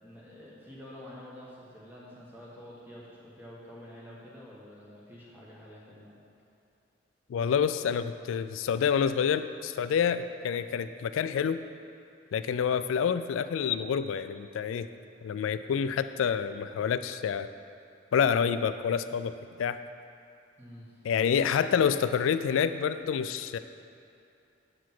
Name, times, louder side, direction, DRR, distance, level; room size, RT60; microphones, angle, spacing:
voice 1, 0.0-6.2 20.6-21.0, left 1 dB, 10° right, -6 dB, 1.3 m, -48 dB
voice 2, 7.3-11.6 12.3-14.9 15.2-17.5 18.1-19.3 19.6-19.8 21.0-23.6, left 7 dB, 90° left, 12 dB, 0.3 m, -28 dB
7.0 x 4.9 x 5.9 m, 2.6 s
head